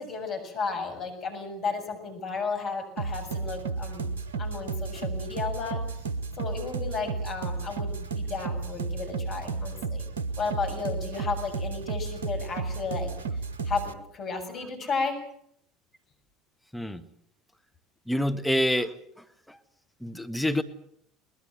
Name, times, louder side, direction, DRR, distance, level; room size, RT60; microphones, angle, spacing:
voice 1, 0.0-4.1 4.4-5.8 6.4-10.0 10.4-13.1 13.6-15.2, left 4 dB, 45° left, 6 dB, 7.3 m, -33 dB
sound 1, 3.0-14.0, right 4 dB, 80° right, 1.2 m, -33 dB
voice 2, 18.1-19.6 20.0-20.6, equal, 5° left, 9 dB, 1.5 m, -28 dB
22.0 x 21.0 x 7.8 m, 0.69 s
figure-of-eight pair, 70°, 0 cm